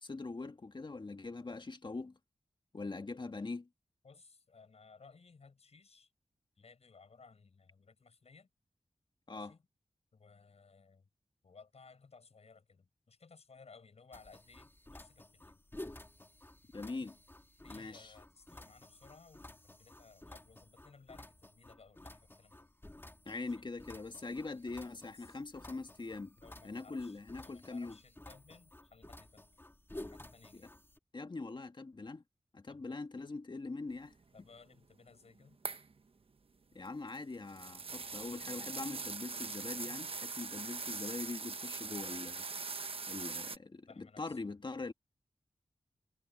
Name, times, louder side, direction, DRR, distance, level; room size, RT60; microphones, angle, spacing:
voice 1, 0.0-2.2 2.7-3.7 9.3-9.5 16.7-17.2 17.7-18.1 23.3-26.4 26.6-28.0 30.5-30.6 31.1-32.2 32.5-34.1 36.7-42.5 43.1-44.9, left 3 dB, 45° left, 1.8 m, -42 dB
voice 2, 4.0-6.1 6.6-8.5 9.3-9.6 10.1-11.1 11.4-15.6 16.7-17.1 17.6-22.7 23.4-23.7 25.1-25.4 26.4-29.4 29.9-30.7 32.7-32.8 34.3-35.6 43.9-44.4, left 4 dB, 70° left, 5.9 m, -60 dB
sound 1, 14.1-31.0, left 1 dB, 20° left, 2.8 m, -53 dB
sound 2, 35.6-35.9 36.9-43.6, right 4 dB, 60° right, 1.1 m, -41 dB
wide cardioid pair, 65°, 11 cm